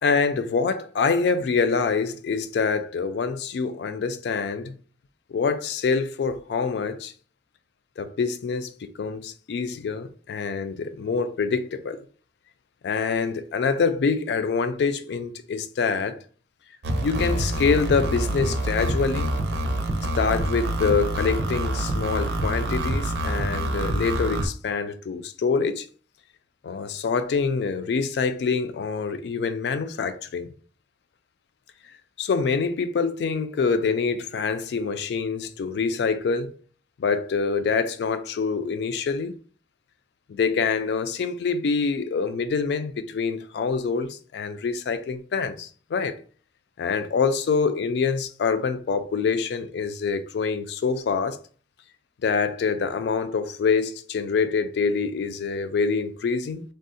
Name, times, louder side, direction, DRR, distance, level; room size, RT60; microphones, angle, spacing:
voice 1, 0.0-4.8 5.3-7.1 8.0-12.0 12.8-16.2 17.0-19.3 20.2-25.9 26.6-30.5 32.2-36.5 37.0-39.3 40.3-46.2 46.8-51.4 52.2-56.6, left 5 dB, 65° left, 0.3 m, -25 dB
sound 1, 16.8-24.5, right 1 dB, 70° right, 0.5 m, -26 dB
3.4 x 2.0 x 2.6 m
head